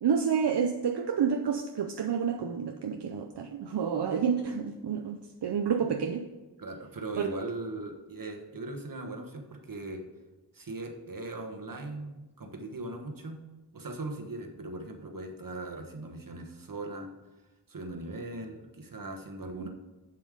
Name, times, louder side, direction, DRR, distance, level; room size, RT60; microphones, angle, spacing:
voice 1, 0.0-6.3 7.2-7.3 19.5-19.7, right 7 dB, 75° right, 5 dB, 0.6 m, -29 dB
voice 2, 6.6-10.0 10.5-13.4 13.7-17.1 17.7-19.7, right 2 dB, 55° right, 4 dB, 1.3 m, -39 dB
7.6 x 7.4 x 4.9 m, 1.1 s
wide cardioid pair, 80°, 41 cm